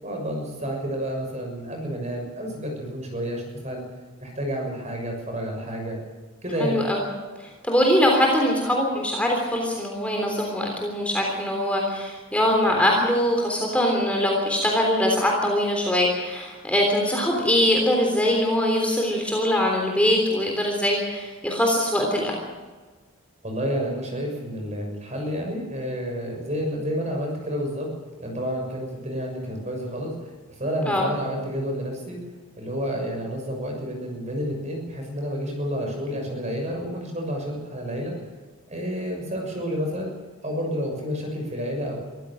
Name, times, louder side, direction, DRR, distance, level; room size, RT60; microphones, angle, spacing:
voice 1, 0.0-3.8 4.2-6.0 6.4-6.7 23.4-27.9 28.2-30.3 30.6-32.2 32.6-38.1 38.7-40.1 40.4-42.0, equal, 30° right, 2 dB, 6.7 m, -30 dB
voice 2, 6.6-7.0 7.4-22.4 30.9-31.1, left 1 dB, 5° left, 0 dB, 3.5 m, -22 dB
24.5 x 15.0 x 7.7 m, 1.3 s
head